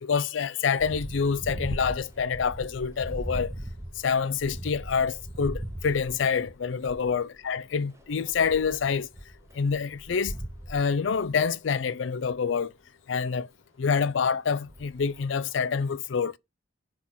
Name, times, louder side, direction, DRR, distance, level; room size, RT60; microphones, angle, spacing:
voice 1, 0.0-3.5 4.0-9.1 9.6-10.4 10.7-12.7 13.1-13.5 13.8-16.3, left 6 dB, 75° left, 0.5 m, -27 dB
sound 1, 0.8-7.2 7.5-11.4 12.3-12.4 14.7-15.2, right 1 dB, 15° right, 0.8 m, -39 dB
6.0 x 5.6 x 6.3 m
head